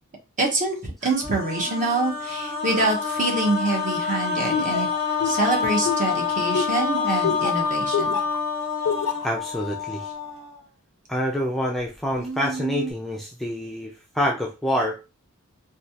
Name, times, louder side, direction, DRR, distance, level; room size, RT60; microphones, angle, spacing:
voice 1, 0.4-4.9 5.2-8.1, right 2 dB, 35° right, 0 dB, 1.0 m, -25 dB
sound 1, 1.0-10.6 11.8-11.9 12.2-12.9, left 5 dB, 65° right, 1.0 m, -27 dB
Laughter, 4.5-8.4 8.8-9.3, left 6 dB, 90° left, 0.4 m, -27 dB
voice 2, 9.2-10.1 11.1-15.0, equal, ahead, -2 dB, 0.4 m, -27 dB
3.1 x 2.3 x 2.8 m, 0.28 s
head